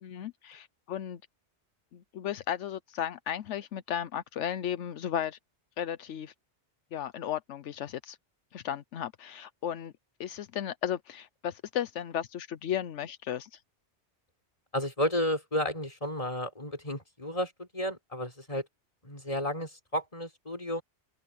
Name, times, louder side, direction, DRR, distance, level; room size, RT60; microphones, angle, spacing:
voice 1, 0.0-1.2 1.9-5.4 5.8-6.3 6.9-8.2 8.5-9.9 10.2-13.6, left 10 dB, 80° left, 1.0 m, -35 dB
voice 2, 14.7-18.7 19.0-20.8, equal, 30° left, 4.6 m, -32 dB
omnidirectional pair, 1.2 m